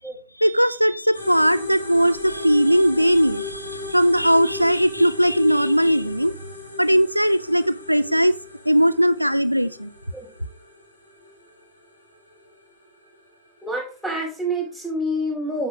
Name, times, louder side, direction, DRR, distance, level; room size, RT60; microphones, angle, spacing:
voice 1, 0.4-6.3 6.8-8.3 8.7-9.9, equal, 90° right, 0.3 m, -19 dB
sound 1, 1.1-14.9, left 3 dB, 80° left, 2.2 m, -38 dB
voice 2, 13.6-15.7, equal, 5° left, 4.9 m, -27 dB
10.0 x 7.6 x 2.4 m
figure-of-eight pair, 90°, 0 cm